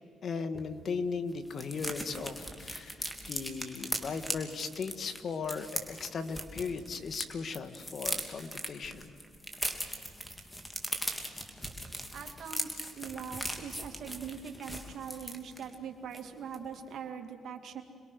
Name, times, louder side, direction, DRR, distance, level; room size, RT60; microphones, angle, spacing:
voice 1, 0.2-9.1, left 5 dB, 50° left, 9 dB, 1.6 m, -37 dB
sound 1, 0.5-0.7 0.9-1.0 1.3-7.2 7.5-15.7 16.1-16.3 16.5-16.8, equal, 10° left, 3.1 m, -39 dB
voice 2, 12.1-17.8, right 7 dB, 65° right, 5 dB, 2.5 m, -42 dB
27.0 x 21.5 x 6.5 m, 2.4 s
cardioid pair, 90°, 0 cm